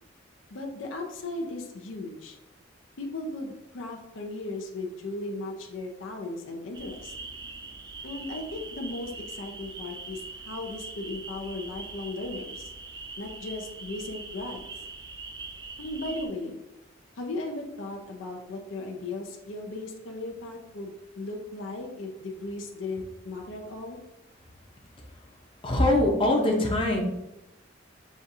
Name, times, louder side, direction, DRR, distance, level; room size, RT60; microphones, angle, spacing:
voice 1, 0.5-2.4 3.0-7.1 8.0-12.7 13.2-14.7 15.8-16.6 17.2-24.0, left 2 dB, 80° left, 2 dB, 0.6 m, -36 dB
sound 1, 6.7-16.3, right 3 dB, 20° right, 0.3 m, -42 dB
voice 2, 25.6-27.0, left 1 dB, 25° left, -1 dB, 0.7 m, -22 dB
6.1 x 2.5 x 2.7 m, 0.90 s
head